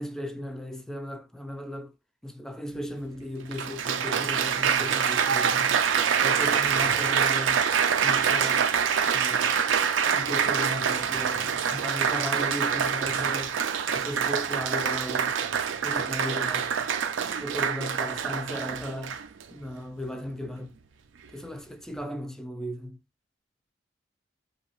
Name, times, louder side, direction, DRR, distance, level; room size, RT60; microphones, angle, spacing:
voice 1, 0.0-1.9 2.2-5.9 6.2-7.7 8.0-8.7 9.0-9.6 10.1-15.4 15.8-16.7 17.4-19.2 19.5-20.8 21.3-23.0, left 1 dB, 5° left, 0.3 m, -36 dB
Applause, 2.7-2.8 3.5-19.4 20.2-20.5, right 7 dB, 90° right, 0.4 m, -25 dB
2.8 x 2.0 x 2.9 m
head